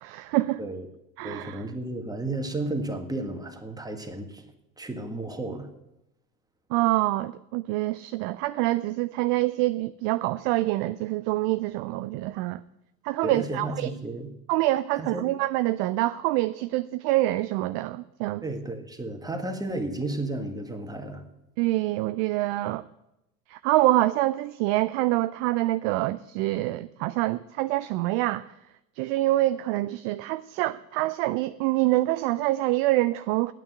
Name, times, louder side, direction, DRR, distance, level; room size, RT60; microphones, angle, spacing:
voice 1, 0.0-0.6 1.2-1.6 6.7-12.6 13.0-13.9 14.5-18.4 21.6-22.8 23.5-28.4 29.0-33.5, right 17 dB, 40° right, 0.4 m, -26 dB
voice 2, 1.2-5.7 13.2-14.3 15.0-15.3 18.4-21.2, right 2 dB, 5° right, 1.7 m, -33 dB
9.3 x 9.1 x 8.8 m
hypercardioid pair, 80°, 49 cm